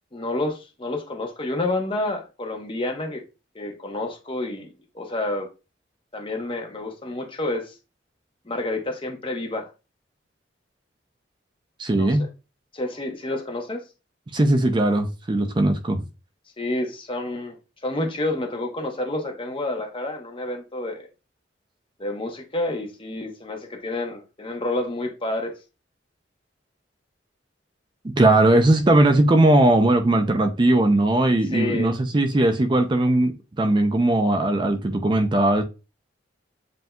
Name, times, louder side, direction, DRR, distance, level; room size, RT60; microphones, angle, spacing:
voice 1, 0.1-3.2 3.5-5.5 6.1-7.7 8.5-9.7 11.9-12.3 12.7-13.8 16.6-17.6 17.8-21.1 22.0-25.6 31.5-31.9, left 2 dB, 30° left, 0.8 m, -29 dB
voice 2, 11.8-12.2 14.3-16.0 28.0-35.6, right 1 dB, 25° right, 0.4 m, -19 dB
7.7 x 2.7 x 2.2 m
head